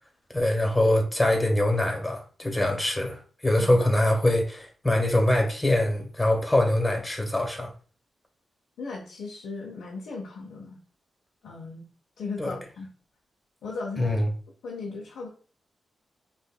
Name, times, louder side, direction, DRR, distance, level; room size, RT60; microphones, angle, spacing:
voice 1, 0.3-7.7 12.4-12.6 14.0-14.3, left 1 dB, 20° left, 1.3 m, -23 dB
voice 2, 8.8-10.8 11.4-11.9 12.2-12.9 13.6-14.3 14.6-15.3, left 4 dB, 85° left, 0.8 m, -37 dB
5.4 x 2.5 x 2.3 m
supercardioid pair, 50°, 0 cm